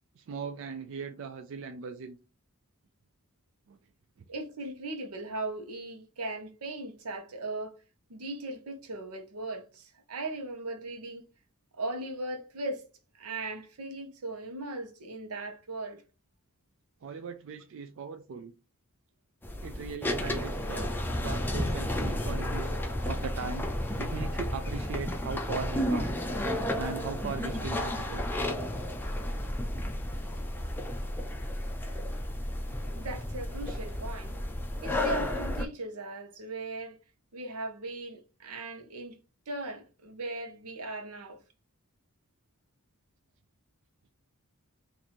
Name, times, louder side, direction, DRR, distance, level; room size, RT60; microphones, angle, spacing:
voice 1, 0.2-2.2 3.7-3.8 4.2-4.3 17.0-18.6 19.6-22.7 23.1-23.7 24.0-26.1 26.8-28.3, right 5 dB, 60° right, 0.3 m, -39 dB
voice 2, 4.3-7.8 8.1-11.3 11.7-12.8 13.1-16.0 32.9-34.3 34.8-37.0 37.3-39.2 39.5-41.4, right 2 dB, 90° right, 0.9 m, -38 dB
sound 1, 19.4-35.6, left 1 dB, 10° left, 0.5 m, -32 dB
3.0 x 2.6 x 4.1 m
head